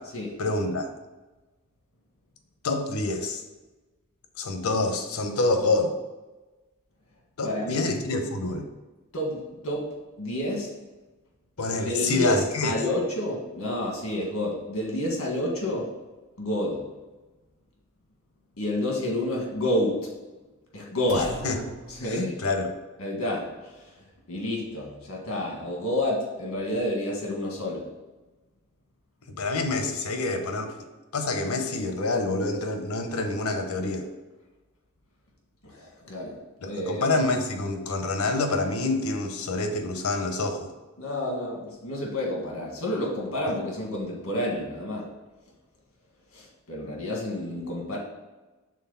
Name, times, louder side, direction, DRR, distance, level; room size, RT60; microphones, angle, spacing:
voice 1, 0.4-0.9 2.6-3.4 4.4-5.9 7.4-8.7 11.6-12.7 21.1-21.6 22.4-22.7 29.3-30.7 31.1-34.1 36.6-40.7, left 2 dB, 90° left, 6 dB, 0.8 m, -27 dB
voice 2, 7.4-7.8 9.1-10.7 11.8-15.9 16.4-16.9 18.6-20.1 20.7-21.4 21.9-22.4 23.0-23.9 24.3-27.9 35.6-36.4 36.6-37.1 41.0-45.1 46.3-48.0, left 1 dB, 75° left, -2 dB, 1.8 m, -29 dB
sound 1, 21.1-22.7, right 3 dB, 65° right, 0.5 m, -41 dB
6.4 x 3.8 x 5.6 m, 1.2 s
head